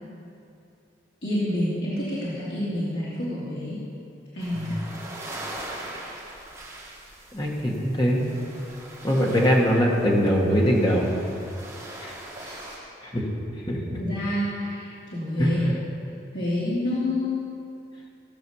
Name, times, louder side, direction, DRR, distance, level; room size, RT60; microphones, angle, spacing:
voice 1, 1.2-3.8 4.3-4.8 12.4-12.9 14.0-15.6 16.3-17.5, left 1 dB, 70° left, -10 dB, 2.7 m, -28 dB
sound 1, 4.4-12.8, right 1 dB, 15° right, 2.7 m, -41 dB
voice 2, 7.3-8.3 9.0-11.2 12.0-12.1 13.0-13.2 13.7-14.0 15.4-15.8, equal, 25° left, -2 dB, 1.6 m, -22 dB
17.0 x 6.4 x 6.9 m, 2.6 s
head